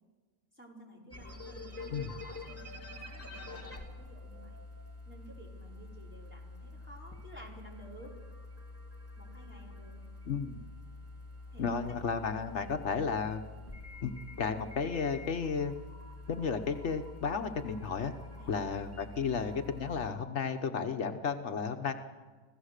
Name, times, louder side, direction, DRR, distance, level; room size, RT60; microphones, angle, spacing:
voice 1, 0.5-4.6 5.0-8.2 9.2-10.0 11.5-11.7 12.5-12.7 18.4-18.6 19.2-19.4, right 1 dB, 10° right, -3 dB, 4.2 m, -53 dB
sound 1, 1.1-20.1, left 2 dB, 10° left, 3.1 m, -47 dB
voice 2, 10.3-10.6 11.6-13.4 14.0-14.1 14.4-15.7 16.3-18.1 18.5-21.9, left 5 dB, 75° left, 7 dB, 1.3 m, -33 dB
26.0 x 16.5 x 6.6 m, 1.4 s
omnidirectional pair, 1.2 m